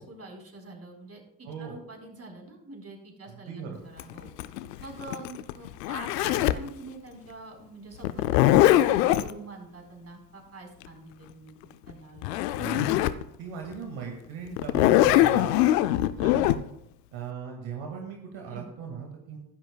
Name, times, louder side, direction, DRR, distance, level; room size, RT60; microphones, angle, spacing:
voice 1, 0.0-4.3 4.8-11.5 11.9-12.9 16.4-16.5 18.5-18.7, right 3 dB, 30° right, 2 dB, 4.1 m, -45 dB
voice 2, 3.2-3.8 12.6-13.1 13.4-15.8 16.2-16.3 17.1-19.4, right 6 dB, 70° right, 1 dB, 2.1 m, -38 dB
Zipper (clothing), 4.0-6.7 8.0-9.3 11.9-12.0 12.2-13.2 13.7-13.8 14.6-16.6, left 14 dB, 90° left, 0.6 m, -22 dB
15.5 x 11.5 x 2.3 m, 0.79 s
hypercardioid pair, 60°, 48 cm